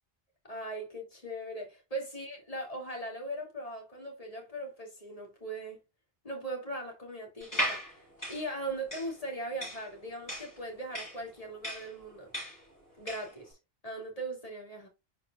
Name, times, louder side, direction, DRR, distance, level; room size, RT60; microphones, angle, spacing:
voice 1, 0.5-5.8 6.2-7.8 8.3-12.3 13.0-13.6 13.8-14.9, right 1 dB, 35° left, 2.5 m, -39 dB
sound 1, 7.4-13.4, equal, 20° left, 5.1 m, -37 dB
10.0 x 4.7 x 2.3 m
omnidirectional pair, 1.0 m